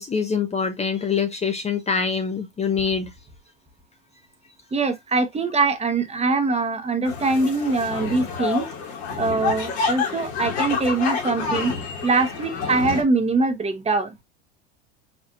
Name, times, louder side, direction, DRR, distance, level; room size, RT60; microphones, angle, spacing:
voice 1, 0.0-3.1, left 6 dB, 20° left, 0.7 m, -24 dB
voice 2, 4.7-8.7 9.2-11.7 12.0-14.1, right 3 dB, 20° right, 1.1 m, -23 dB
sound 1, 7.0-13.0, left 5 dB, 75° left, 2.4 m, -28 dB
4.5 x 4.0 x 2.4 m
hypercardioid pair, 95°, 32 cm